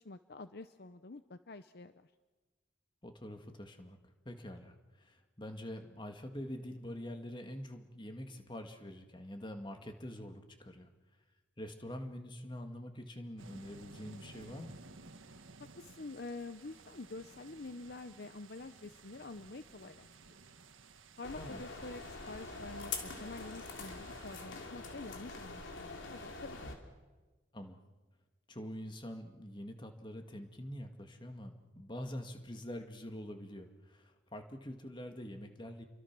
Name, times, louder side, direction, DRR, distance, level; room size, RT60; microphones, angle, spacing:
voice 1, 0.0-2.1 15.7-20.1 21.2-26.6, left 3 dB, 55° left, 10 dB, 0.8 m, -47 dB
voice 2, 3.0-10.9 11.6-14.8 21.4-21.7 27.5-27.8 28.5-35.8, equal, 25° left, 5 dB, 2.0 m, -45 dB
sound 1, 13.4-24.5, right 3 dB, 85° right, 1.6 m, -56 dB
sound 2, 21.2-26.7, left 4 dB, 75° left, 3.1 m, -44 dB
29.5 x 24.0 x 6.1 m, 1.3 s
head